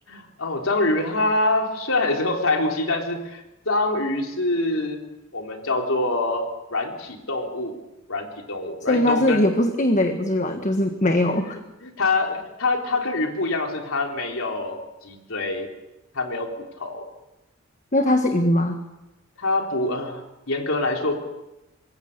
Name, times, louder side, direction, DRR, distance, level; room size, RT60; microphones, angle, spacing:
voice 1, 0.1-5.0 5.3-6.5 6.7-7.7 8.1-9.4 11.4-15.7 16.1-16.5 16.8-17.0 19.4-21.2, left 2 dB, 80° left, 2 dB, 3.7 m, -25 dB
voice 2, 8.9-11.6 17.9-18.8, left 1 dB, 35° left, 5 dB, 1.5 m, -21 dB
26.0 x 21.0 x 6.7 m, 0.97 s
head